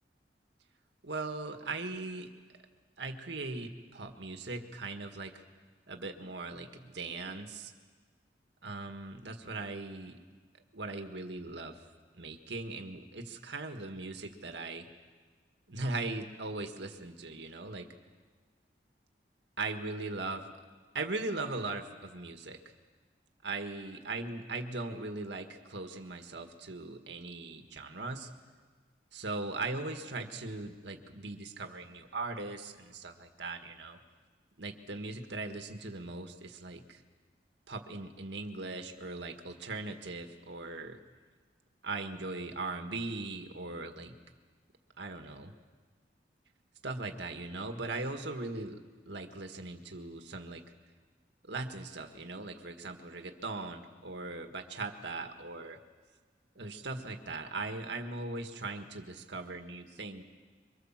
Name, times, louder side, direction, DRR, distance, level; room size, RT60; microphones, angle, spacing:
voice 1, 1.0-2.3 3.0-5.4 5.9-7.7 8.6-10.2 10.7-11.8 12.2-14.9 15.7-17.9 19.6-20.5 20.9-22.6 23.4-28.3 29.1-34.0 34.6-37.0 37.7-41.0 41.8-44.1 45.0-45.5 46.8-48.8 49.1-50.6 51.5-55.8 56.6-60.2, right 3 dB, 75° right, 5 dB, 1.8 m, -39 dB
25.0 x 24.0 x 7.5 m, 1.5 s
head